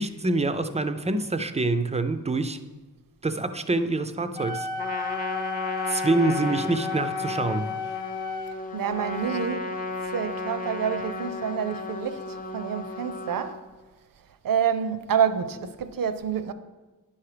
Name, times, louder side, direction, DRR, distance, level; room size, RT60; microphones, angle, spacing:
voice 1, 0.0-2.6 3.2-4.7 5.9-7.7, right 2 dB, 20° right, 0.3 m, -26 dB
Wind instrument woodwind instrument, 4.3-8.6, left 5 dB, 70° left, 0.9 m, -33 dB
Trumpet, 4.8-13.6, left 3 dB, 25° left, 0.6 m, -34 dB
voice 2, 8.7-13.6 14.4-16.5, right 8 dB, 75° right, 0.6 m, -28 dB
10.5 x 5.7 x 4.9 m
wide cardioid pair, 170°, 34 cm